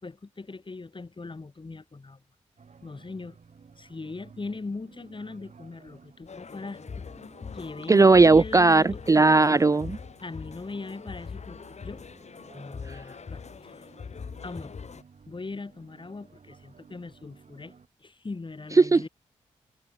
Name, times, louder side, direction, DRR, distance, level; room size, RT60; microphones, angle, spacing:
voice 1, 0.0-2.2 2.8-3.4 3.8-7.0 7.5-9.6 10.2-12.0 12.5-13.9 14.4-14.7 15.3-17.7 18.0-19.1, left 3 dB, 35° left, 3.0 m, -40 dB
sound 1, 2.6-17.9, right 5 dB, 55° right, 6.2 m, -55 dB
sound 2, 6.3-15.0, left 5 dB, 55° left, 2.0 m, -42 dB
voice 2, 7.9-10.0 18.8-19.1, right 3 dB, 25° right, 0.4 m, -17 dB
supercardioid pair, 40°, 14 cm